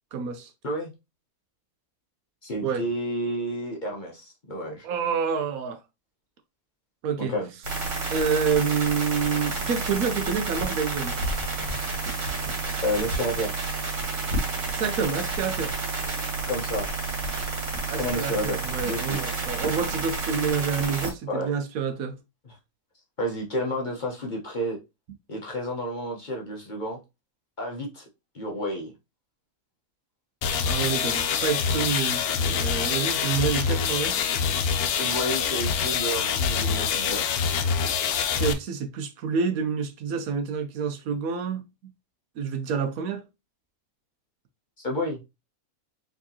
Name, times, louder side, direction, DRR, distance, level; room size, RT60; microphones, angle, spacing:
voice 1, 0.1-0.5 2.6-2.8 4.8-5.8 7.0-7.3 8.1-11.1 14.7-15.7 17.9-22.2 30.6-34.2 38.4-41.6 42.4-43.2, right 6 dB, 75° right, 1.1 m, -28 dB
voice 2, 2.4-4.9 7.2-7.5 12.8-13.5 16.5-16.9 18.0-18.6 18.8-19.2 21.3-21.5 22.4-22.5 23.2-24.8 25.3-27.0 27.6-28.0 28.3-28.9 34.9-37.2 44.8-45.2, equal, 35° left, 1.1 m, -30 dB
sound 1, 7.6-21.1, right 3 dB, 55° right, 1.9 m, -30 dB
sound 2, 30.4-38.5, left 6 dB, 90° left, 1.1 m, -25 dB
4.5 x 3.6 x 2.8 m
omnidirectional pair, 1.6 m